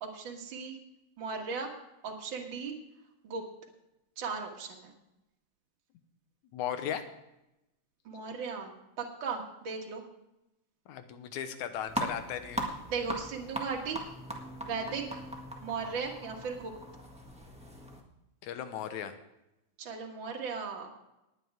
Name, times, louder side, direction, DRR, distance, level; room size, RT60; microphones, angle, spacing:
voice 1, 0.0-0.8 1.2-1.7 2.0-2.7 3.2-3.4 4.2-4.9 8.1-10.0 12.9-14.0 14.6-15.2 15.6-16.7 19.8-20.9, right 5 dB, 45° right, 1 dB, 2.1 m, -37 dB
voice 2, 6.5-7.0 10.9-12.7 18.4-19.2, left 9 dB, 80° left, 9 dB, 2.3 m, -36 dB
sound 1, 11.9-18.0, right 1 dB, 5° right, 0.4 m, -39 dB
19.5 x 9.4 x 3.6 m, 0.92 s
omnidirectional pair, 3.4 m